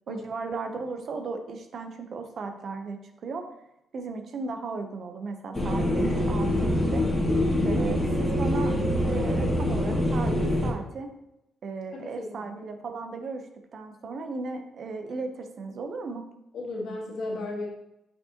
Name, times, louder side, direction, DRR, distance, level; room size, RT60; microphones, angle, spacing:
voice 1, 0.1-3.4 3.9-7.1 7.6-8.8 9.0-11.1 11.6-13.5 13.7-16.2, right 4 dB, 55° right, 5 dB, 0.8 m, -35 dB
sound 1, 5.5-10.7, left 1 dB, 15° left, 1.9 m, -25 dB
voice 2, 11.9-12.5 16.5-17.7, left 2 dB, 70° left, -2 dB, 1.5 m, -35 dB
6.1 x 5.2 x 2.9 m, 0.85 s
cardioid pair, 90°, 0 cm